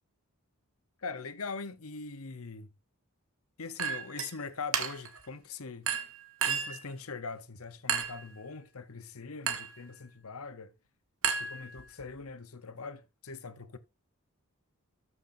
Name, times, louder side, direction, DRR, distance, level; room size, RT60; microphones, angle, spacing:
voice 1, 1.0-2.7 3.6-5.9 6.4-10.7 11.4-13.8, left 4 dB, 75° left, 1.0 m, -42 dB
Chink clink, 3.8-4.3 4.7-5.2 5.9-6.8 7.9-8.3 9.5-9.8 11.2-12.0, right 7 dB, 65° right, 1.3 m, -32 dB
13.0 x 6.3 x 2.7 m
head